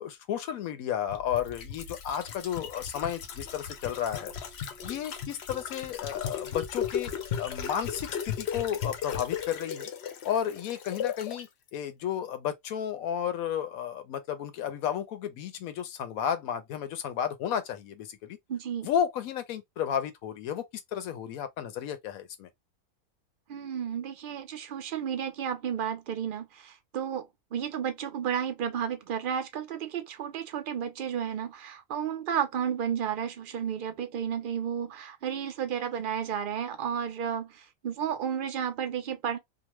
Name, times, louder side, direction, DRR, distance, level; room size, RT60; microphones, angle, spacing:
voice 1, 0.0-4.3 4.8-7.1 7.4-9.9 10.2-18.4 18.8-20.6 20.9-22.5, left 9 dB, 85° left, 1.1 m, -32 dB
sound 1, 1.1-11.4 11.7-11.8, left 8 dB, 60° left, 0.7 m, -36 dB
voice 2, 18.5-18.9 23.5-39.4, right 8 dB, 60° right, 0.5 m, -32 dB
2.9 x 2.0 x 3.0 m
omnidirectional pair, 1.4 m